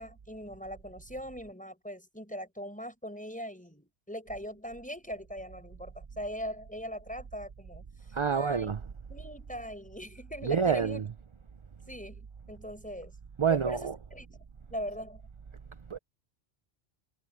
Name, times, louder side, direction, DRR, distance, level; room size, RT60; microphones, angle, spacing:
voice 1, 0.0-7.8 8.3-8.7 9.1-11.1 11.9-13.1 13.5-15.2, equal, 5° left, 5.2 m, -40 dB
voice 2, 8.1-8.8 10.4-11.1 13.4-14.0 15.9-16.0, right 6 dB, 40° right, 0.5 m, -27 dB
omnidirectional pair, 1.2 m